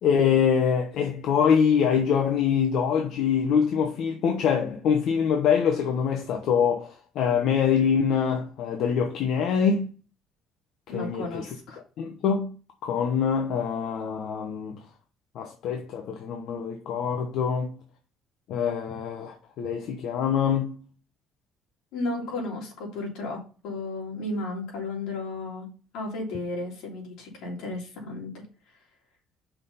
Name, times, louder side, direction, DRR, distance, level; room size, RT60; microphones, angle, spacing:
voice 1, 0.0-9.9 10.9-11.5 12.0-12.6 12.8-14.8 15.3-17.8 18.5-20.8, left 7 dB, 70° left, 1.0 m, -24 dB
voice 2, 10.9-11.8 21.9-25.7 25.9-28.3, left 2 dB, 85° left, 3.2 m, -33 dB
5.7 x 4.3 x 5.4 m
cardioid pair, 120°, 0 cm